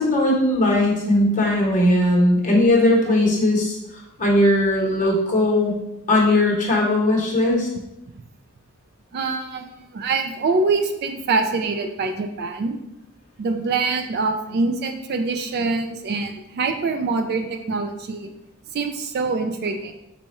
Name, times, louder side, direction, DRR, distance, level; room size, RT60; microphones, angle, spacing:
voice 1, 0.0-3.8 4.2-5.8 6.1-7.7, left 1 dB, 35° left, -3 dB, 1.0 m, -18 dB
voice 2, 9.1-12.8 13.4-18.3 18.7-19.9, right 3 dB, 45° right, 6 dB, 0.3 m, -24 dB
4.1 x 2.3 x 4.2 m, 0.88 s
head